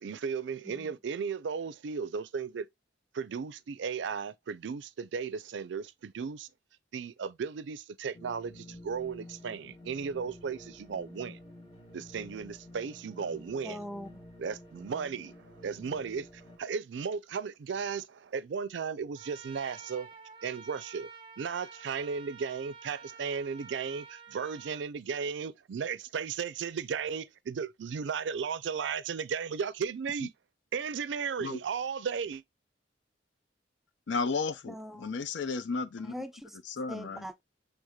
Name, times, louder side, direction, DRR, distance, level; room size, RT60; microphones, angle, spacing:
voice 1, 0.0-2.7 3.1-6.5 6.9-11.4 11.9-13.8 14.4-20.1 20.4-21.1 21.4-30.3 30.7-32.4, right 6 dB, 80° right, 0.4 m, -35 dB
sound 1, 8.1-16.6, left 1 dB, 30° left, 1.2 m, -50 dB
voice 2, 13.6-14.2 34.6-35.1 36.0-36.6 36.9-37.4, equal, ahead, 0.4 m, -42 dB
Trumpet, 19.1-24.8, right 5 dB, 30° right, 0.8 m, -50 dB
voice 3, 34.1-36.1 36.7-37.3, left 4 dB, 85° left, 0.5 m, -33 dB
6.4 x 3.4 x 2.2 m
head